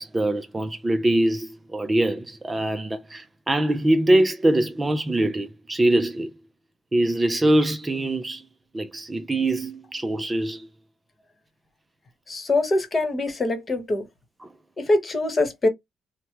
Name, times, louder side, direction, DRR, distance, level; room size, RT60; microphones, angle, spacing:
voice 1, 0.0-6.3 6.9-8.4 8.7-10.7 14.4-14.5, right 1 dB, 20° right, 0.4 m, -23 dB
voice 2, 12.3-14.0 14.8-15.7, left 2 dB, 35° left, 1.2 m, -23 dB
3.0 x 2.1 x 2.8 m
cardioid pair, 90°, 0 cm